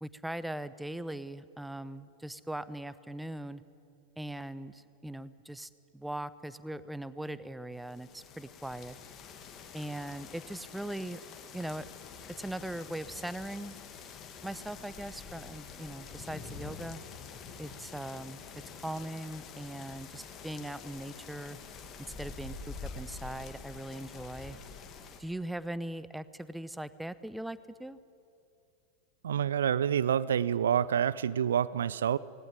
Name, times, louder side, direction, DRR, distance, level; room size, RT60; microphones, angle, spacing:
voice 1, 0.0-3.6 4.2-8.9 9.7-11.2 11.5-11.9 12.4-13.8 14.4-17.0 17.6-18.4 18.8-21.6 22.0-24.6 25.2-28.0, right 1 dB, 5° right, 16 dB, 0.7 m, -40 dB
sound 1, 7.9-25.2, left 5 dB, 30° left, 2.1 m, -47 dB
voice 2, 29.2-32.2, right 9 dB, 65° right, 20 dB, 0.4 m, -27 dB
19.0 x 17.5 x 9.9 m, 2.7 s
figure-of-eight pair, 90°, 0 cm